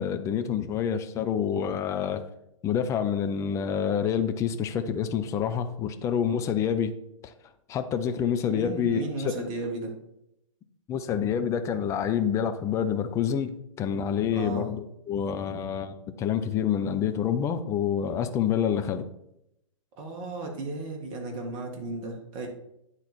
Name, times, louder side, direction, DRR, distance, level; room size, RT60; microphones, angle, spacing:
voice 1, 0.0-2.2 2.6-6.9 7.2-7.3 7.7-9.5 10.9-19.1, left 8 dB, 15° left, 8 dB, 0.5 m, -27 dB
voice 2, 8.5-9.9 14.3-14.7 20.0-22.5, right 2 dB, 30° right, 1 dB, 1.7 m, -34 dB
9.6 x 4.0 x 4.3 m, 0.82 s
figure-of-eight pair, 115°, 17 cm